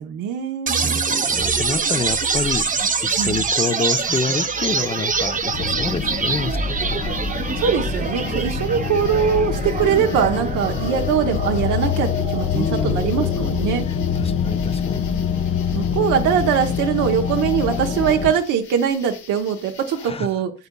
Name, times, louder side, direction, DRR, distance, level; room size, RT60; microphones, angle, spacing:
voice 1, 0.0-1.3 3.1-3.4 7.6-13.9 15.7-20.5, right 8 dB, 85° right, 0.9 m, -22 dB
sound 1, 0.7-14.6, right 5 dB, 25° right, 0.7 m, -25 dB
voice 2, 0.8-7.1 8.6-8.9 12.5-13.1 13.9-15.0 20.0-20.3, left 4 dB, 20° left, 0.5 m, -28 dB
sound 2, 1.4-20.1, left 4 dB, 75° left, 1.4 m, -42 dB
sound 3, 5.5-18.3, left 7 dB, 45° left, 0.8 m, -25 dB
9.3 x 6.8 x 2.2 m
cardioid pair, 90°, 30 cm